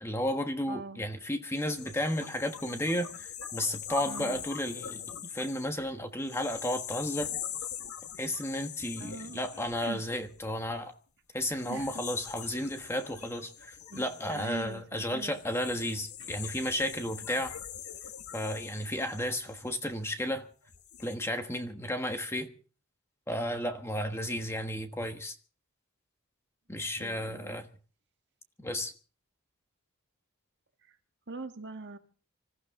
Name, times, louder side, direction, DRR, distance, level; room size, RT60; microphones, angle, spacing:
voice 1, 0.0-5.0 5.3-7.3 8.2-10.9 11.3-17.6 18.3-20.5 21.0-22.6 23.3-25.4 26.7-27.7 28.6-28.9, left 1 dB, 10° left, 1.3 m, -33 dB
voice 2, 0.7-1.0 4.1-4.4 9.0-10.0 11.7-11.9 12.5-12.6 13.9-15.4 16.2-16.3 16.6-16.7 27.0-27.6 30.8-31.0 31.3-32.0, right 3 dB, 50° right, 1.6 m, -43 dB
sound 1, 1.5-10.8 11.4-20.1 20.6-21.1, left 8 dB, 80° left, 1.7 m, -43 dB
26.0 x 14.5 x 3.7 m
head